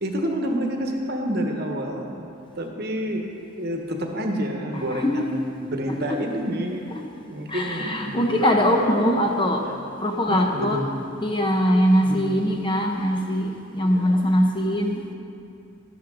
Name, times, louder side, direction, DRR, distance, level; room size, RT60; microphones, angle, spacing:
voice 1, 0.0-3.3 3.6-7.0 7.3-9.2 9.6-9.8 10.3-10.9 12.0-12.5 13.8-14.0, equal, 50° right, 2 dB, 1.2 m, -29 dB
voice 2, 4.7-5.2 6.1-6.2 7.5-9.7 10.0-10.8 11.2-15.1, equal, 25° left, 2 dB, 0.8 m, -22 dB
12.5 x 11.5 x 3.8 m, 2.4 s
head